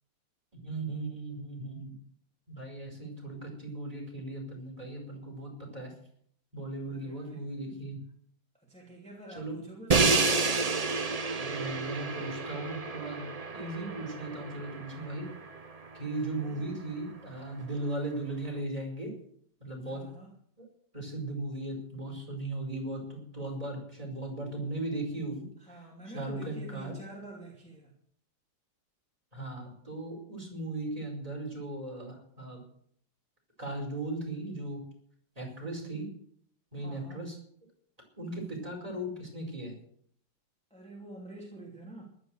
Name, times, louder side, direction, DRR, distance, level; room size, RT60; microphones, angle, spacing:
voice 1, 0.5-2.0 2.5-5.9 6.5-8.0 9.4-9.6 11.3-13.3 13.5-15.3 15.9-19.1 19.6-20.0 20.6-20.7 20.9-25.4 26.1-26.9 29.3-32.6 33.6-34.8 35.4-36.1 36.7-37.4 38.2-39.7, right 2 dB, 20° right, -1 dB, 5.3 m, -37 dB
voice 2, 6.8-7.5 8.6-10.2 16.2-16.6 19.9-20.3 25.6-27.9 36.7-37.2 40.7-42.0, right 1 dB, 5° left, -3 dB, 2.8 m, -47 dB
Crash cymbal, 9.9-15.9, right 4 dB, 35° right, 0.6 m, -30 dB
14.5 x 12.0 x 6.5 m, 0.64 s
omnidirectional pair, 1.9 m